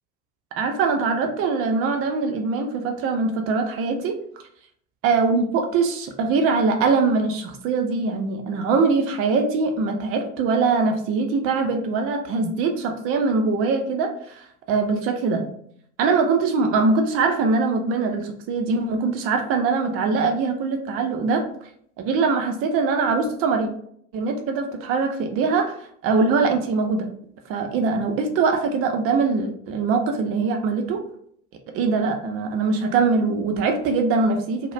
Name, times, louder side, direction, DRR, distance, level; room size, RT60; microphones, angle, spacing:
voice 1, 0.6-4.2 5.0-15.5 16.0-21.4 22.0-23.7 24.1-27.1 27.5-31.0 31.7-34.7, right 4 dB, 40° right, 4 dB, 0.5 m, -22 dB
2.3 x 2.0 x 3.0 m, 0.64 s
figure-of-eight pair, 70°, 37 cm